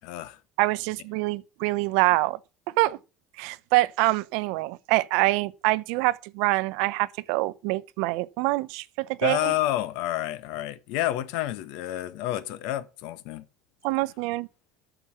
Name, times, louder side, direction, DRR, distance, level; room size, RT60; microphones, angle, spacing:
voice 1, 0.0-0.4 9.2-13.4, left 14 dB, 70° left, 1.1 m, -29 dB
voice 2, 0.6-2.4 2.8-3.0 3.4-9.5 13.8-14.5, right 20 dB, 70° right, 0.7 m, -25 dB
9.2 x 7.0 x 7.0 m
cardioid pair, 170°, 0 cm